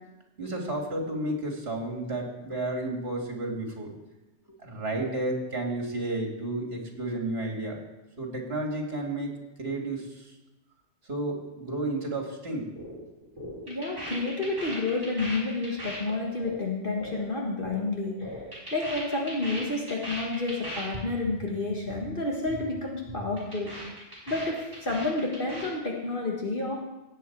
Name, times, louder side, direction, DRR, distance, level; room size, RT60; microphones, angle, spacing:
voice 1, 0.4-3.9 4.6-7.8 8.2-9.3 9.6-10.3 11.1-12.7, right 2 dB, 55° right, 0 dB, 2.7 m, -32 dB
sound 1, 12.8-13.0 13.2-17.8 18.1-21.0 21.2-21.4 21.7-22.1 22.3-22.6 22.9-25.7, equal, 40° right, 5.3 m, -39 dB
voice 2, 13.6-18.4 18.7-23.7 24.3-26.7, left 2 dB, 45° left, -1 dB, 1.8 m, -30 dB
17.5 x 8.2 x 4.7 m, 1.0 s
omnidirectional pair, 1.2 m